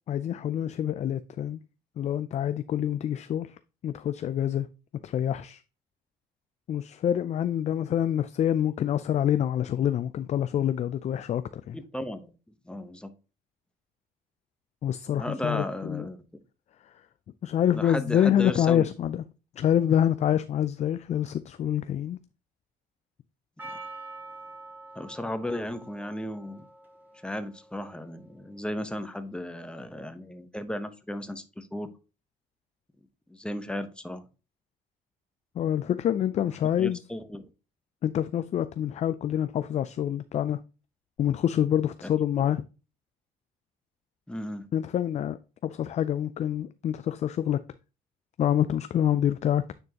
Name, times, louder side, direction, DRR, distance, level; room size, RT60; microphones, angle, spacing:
voice 1, 0.1-1.6 2.0-3.6 3.8-4.7 5.0-5.6 6.7-11.8 14.8-16.0 17.4-19.2 19.6-22.2 35.6-37.0 38.0-40.6 41.2-42.6 44.7-45.4 45.6-47.6 48.4-49.7, left 10 dB, 40° left, 0.4 m, -26 dB
voice 2, 11.7-12.3 12.7-13.1 15.1-16.2 17.7-18.9 25.0-26.6 27.2-31.9 33.3-34.2 36.8-37.5 42.0-42.1 42.4-42.5 44.3-44.6, left 1 dB, 5° left, 0.9 m, -35 dB
Percussion, 23.6-28.6, right 2 dB, 10° right, 2.3 m, -46 dB
9.4 x 4.4 x 2.9 m
cardioid pair, 110°, 17 cm